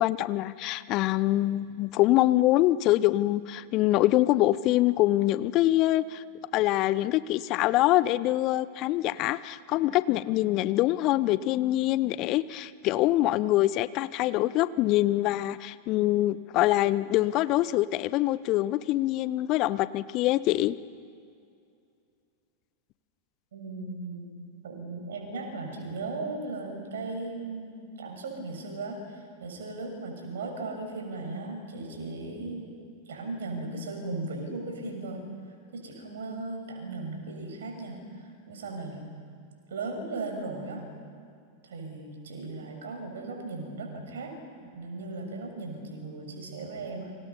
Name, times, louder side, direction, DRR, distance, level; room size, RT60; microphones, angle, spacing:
voice 1, 0.0-6.2 6.5-20.7, left 15 dB, 40° left, 17 dB, 0.7 m, -24 dB
voice 2, 23.5-24.3 24.6-32.7 33.1-35.2 35.7-39.0 39.7-40.8 41.6-44.3 44.7-47.2, right 3 dB, 60° right, 3 dB, 6.4 m, -37 dB
29.0 x 26.0 x 5.7 m, 2.3 s
figure-of-eight pair, 90°, 0 cm